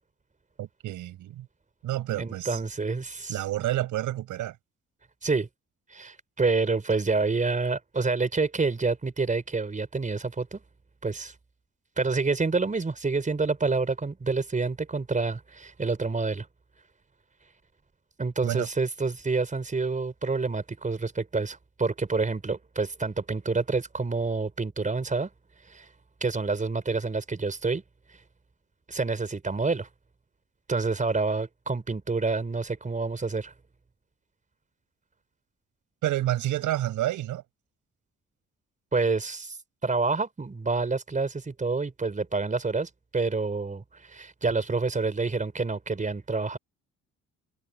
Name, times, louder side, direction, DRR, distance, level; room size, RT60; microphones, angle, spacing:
voice 1, 0.6-1.5 1.8-2.6 3.3-4.6 18.4-18.7 36.0-37.4, right 14 dB, 85° right, 5.7 m, -29 dB
voice 2, 2.2-3.4 5.2-5.5 5.9-10.6 11.0-11.3 12.0-16.5 18.2-25.3 25.7-25.9 26.2-27.8 28.9-29.9 30.7-33.5 38.9-39.6 39.8-46.6, right 4 dB, 25° right, 4.7 m, -28 dB
cardioid pair, 90°, 30 cm